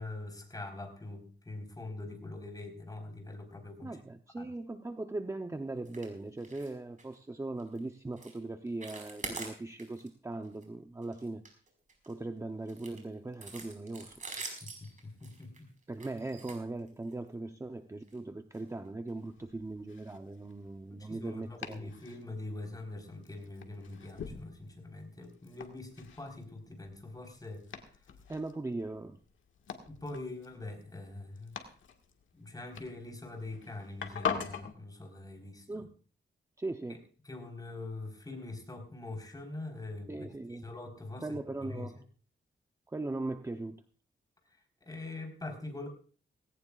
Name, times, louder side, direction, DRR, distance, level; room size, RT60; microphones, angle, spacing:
voice 1, 0.0-4.0 4.4-4.5 14.6-15.7 20.9-27.7 29.9-31.6 32.3-35.8 36.9-37.0 37.2-40.2 40.5-41.9 44.8-45.9, left 2 dB, 20° left, 3 dB, 4.3 m, -43 dB
voice 2, 3.8-11.5 12.1-14.2 15.9-21.9 28.3-29.2 35.7-35.9 36.6-37.0 40.1-40.6 41.2-42.0 42.9-43.8, right 2 dB, 15° right, 6 dB, 0.8 m, -39 dB
sound 1, 5.8-6.1 6.4-6.7 7.0-7.2 7.6-7.8 8.2-8.4 8.7-10.1 10.4-10.6 11.0-12.1 12.7-17.3 18.0-18.2 18.5-18.6 19.1-19.2, right 3 dB, 40° right, 5.0 m, -45 dB
Domestic sounds home sounds, 19.2-34.7, left 7 dB, 85° left, 1.8 m, -44 dB
18.5 x 17.5 x 2.4 m, 0.39 s
wide cardioid pair, 110°, 20 cm